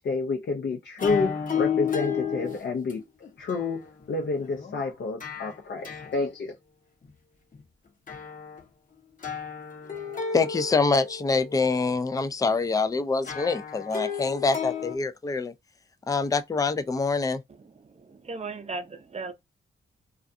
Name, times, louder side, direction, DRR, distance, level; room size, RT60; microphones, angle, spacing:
voice 1, 0.0-3.0 3.4-6.6, left 4 dB, 60° left, 0.6 m, -29 dB
sound 1, 1.0-2.6 2.9-4.8 5.2-5.6 5.8-6.1 7.0-7.1 7.5-7.6 8.1-8.6 9.2-11.9 13.3-15.0, left 7 dB, 45° left, 0.9 m, -32 dB
voice 2, 10.3-15.5 16.1-17.4, left 4 dB, 20° left, 0.4 m, -25 dB
voice 3, 17.8-19.3, right 3 dB, 35° right, 0.6 m, -36 dB
2.4 x 2.2 x 2.6 m
cardioid pair, 60°, 19 cm